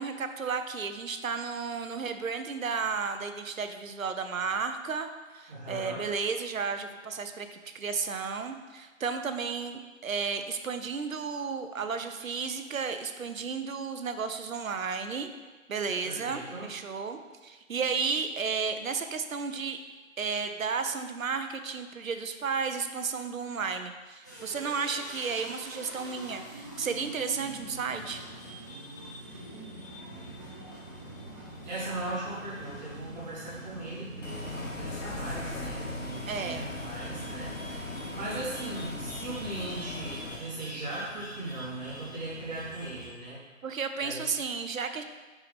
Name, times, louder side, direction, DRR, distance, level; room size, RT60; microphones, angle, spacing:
voice 1, 0.0-5.1 5.3-15.3 15.7-19.8 20.2-28.2 36.3-36.7 43.6-45.0, right 5 dB, 75° right, 8 dB, 0.7 m, -33 dB
voice 2, 5.5-6.1 16.0-16.7 31.7-43.4 44.0-44.3, right 2 dB, 30° right, -8 dB, 1.8 m, -38 dB
sound 1, 24.2-43.2, right 1 dB, 15° left, 0.5 m, -44 dB
Bus, 34.2-40.4, left 2 dB, 65° left, 1.4 m, -38 dB
6.7 x 4.7 x 3.6 m, 1.3 s
figure-of-eight pair, 145°, 41 cm